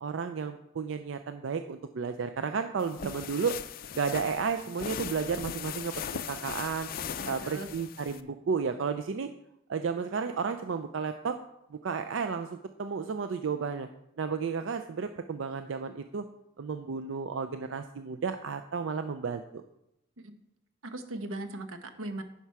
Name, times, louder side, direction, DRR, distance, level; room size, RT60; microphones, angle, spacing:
voice 1, 0.0-3.6 3.9-6.9 7.3-9.3 9.7-11.4 11.7-13.9 14.2-16.2 16.6-19.6, right 5 dB, 65° right, 8 dB, 0.4 m, -32 dB
sound 1, 2.8-8.2, left 8 dB, 45° left, 0.4 m, -39 dB
voice 2, 7.2-7.7 20.2-20.4 20.8-22.2, right 2 dB, 90° right, 8 dB, 1.0 m, -39 dB
10.0 x 5.8 x 4.7 m, 0.83 s
head